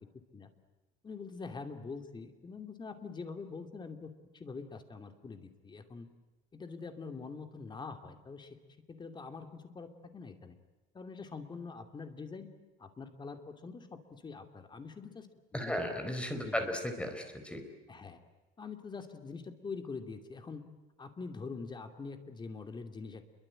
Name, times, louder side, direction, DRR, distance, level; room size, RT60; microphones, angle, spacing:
voice 1, 1.0-6.1 6.5-8.6 8.9-10.6 10.9-12.5 12.8-15.3 15.5-15.8 16.4-16.8 17.9-18.2 18.6-20.6 21.0-23.3, left 4 dB, 20° left, 7 dB, 2.7 m, -44 dB
voice 2, 15.5-17.6, left 1 dB, 5° left, 6 dB, 4.4 m, -35 dB
28.5 x 23.0 x 8.9 m, 1.1 s
cardioid pair, 150°, 21 cm